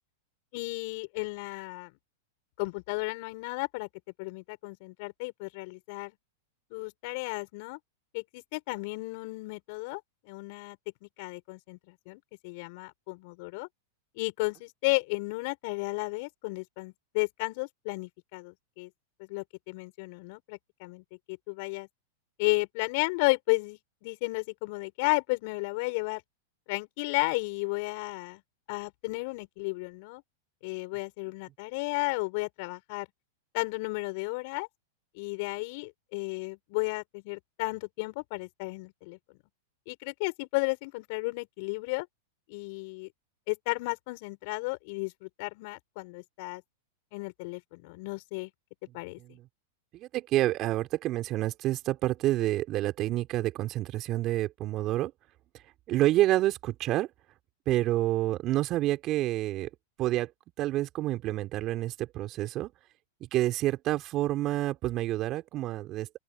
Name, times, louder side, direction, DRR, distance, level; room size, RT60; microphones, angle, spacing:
voice 1, 0.5-1.9 2.6-3.9 4.2-6.1 6.7-7.8 8.1-10.0 10.2-13.7 14.1-18.9 19.2-21.9 22.4-26.2 26.7-28.4 28.7-30.2 30.6-33.1 33.5-34.7 35.1-39.2 39.9-42.1 42.5-43.1 43.5-46.6 47.1-48.5 48.9-49.2, left 28 dB, 55° left, 6.7 m, -33 dB
voice 2, 48.9-49.5 49.9-55.1 55.9-57.1 57.7-59.7 60.0-60.3 60.6-62.7 63.2-66.2, right 15 dB, 40° right, 3.8 m, -28 dB
open air
hypercardioid pair, 110°, 0 cm